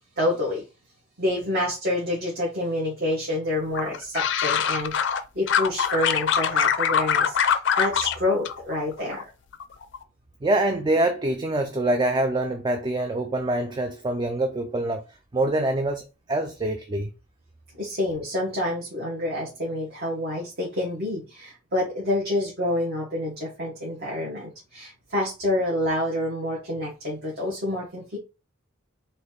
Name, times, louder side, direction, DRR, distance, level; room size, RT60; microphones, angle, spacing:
voice 1, 0.2-0.6 1.2-9.2 17.7-28.2, left 1 dB, 50° right, 1.4 m, -28 dB
sound 1, 3.7-5.2 5.5-8.2 8.5-9.2 9.5-10.0, left 7 dB, 60° left, 0.4 m, -23 dB
voice 2, 10.4-15.0 15.3-17.1, right 1 dB, 20° right, 0.3 m, -25 dB
4.0 x 2.7 x 3.8 m
head